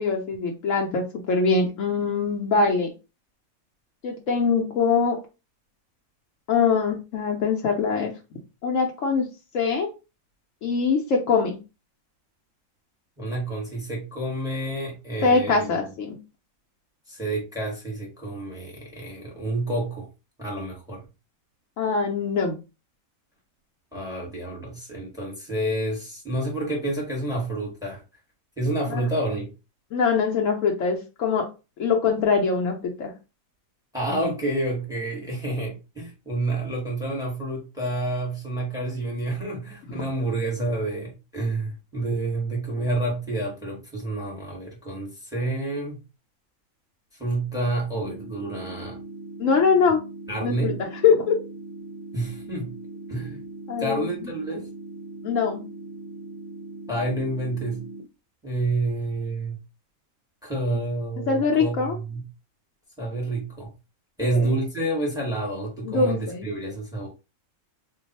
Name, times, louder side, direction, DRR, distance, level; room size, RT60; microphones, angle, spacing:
voice 1, 0.0-2.9 4.0-5.2 6.5-8.1 8.6-9.3 9.5-9.9 10.6-11.6 15.2-16.2 21.8-22.6 28.9-29.1 29.9-31.5 31.8-33.1 49.4-50.0 50.4-51.4 53.7-54.2 55.2-55.6 61.3-62.0 64.2-64.5 65.8-66.5, left 5 dB, 70° left, 1.0 m, -23 dB
voice 2, 13.2-15.7 17.1-20.1 20.4-21.0 23.9-28.0 28.6-29.5 33.9-46.0 47.2-49.0 50.3-50.8 52.1-52.7 53.1-53.4 53.8-54.7 56.9-57.8 58.4-59.6 60.4-62.2 63.0-63.7 64.2-67.1, right 2 dB, 5° right, 1.1 m, -29 dB
sound 1, 48.0-58.0, right 2 dB, 40° right, 0.6 m, -40 dB
2.5 x 2.3 x 4.0 m
omnidirectional pair, 1.5 m